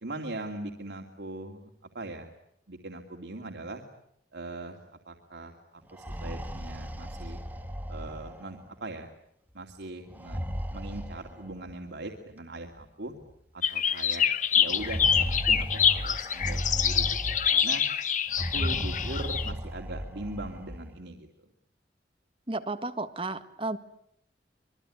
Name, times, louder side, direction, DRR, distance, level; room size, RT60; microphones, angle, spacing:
voice 1, 0.0-2.3 2.7-3.8 4.3-4.8 5.0-7.4 7.9-9.1 9.5-10.4 10.7-13.1 13.5-14.3 14.5-17.8 18.4-21.3, right 2 dB, 85° right, 2 dB, 2.6 m, -40 dB
sound 1, 5.8-8.7 10.1-11.8 12.8-12.9 13.2-13.3 14.6-17.7 18.3-20.9, equal, 10° right, 1.9 m, -35 dB
sound 2, 13.6-19.5, left 7 dB, 45° left, 1.4 m, -26 dB
voice 2, 22.5-23.8, right 2 dB, 30° right, 9 dB, 1.7 m, -33 dB
25.5 x 23.0 x 9.9 m, 0.74 s
head